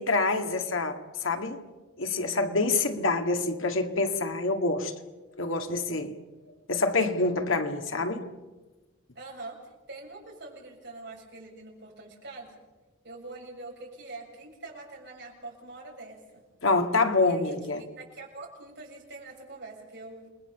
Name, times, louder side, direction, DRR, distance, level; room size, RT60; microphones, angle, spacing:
voice 1, 0.0-1.6 2.0-4.9 5.4-6.1 6.7-8.2 16.6-17.8, left 3 dB, 75° left, 2.1 m, -26 dB
voice 2, 9.2-12.6 13.0-16.4 17.2-20.3, right 2 dB, 55° right, 7.2 m, -44 dB
29.0 x 21.5 x 7.1 m
head